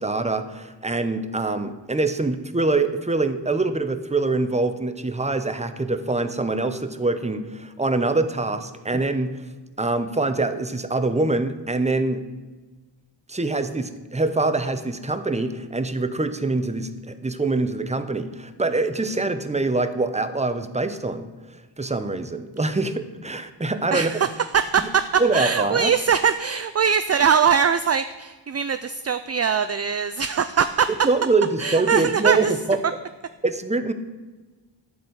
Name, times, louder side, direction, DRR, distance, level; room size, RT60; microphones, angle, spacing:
voice 1, 0.0-9.4 9.8-12.2 13.3-21.3 21.8-24.1 25.2-25.9 31.0-32.8 33.4-33.9, right 3 dB, 15° right, 9 dB, 0.7 m, -24 dB
voice 2, 23.9-24.3 24.5-30.9 31.6-32.5, right 7 dB, 40° right, 11 dB, 0.4 m, -21 dB
12.0 x 4.4 x 7.9 m, 1.3 s
wide cardioid pair, 85°, 42 cm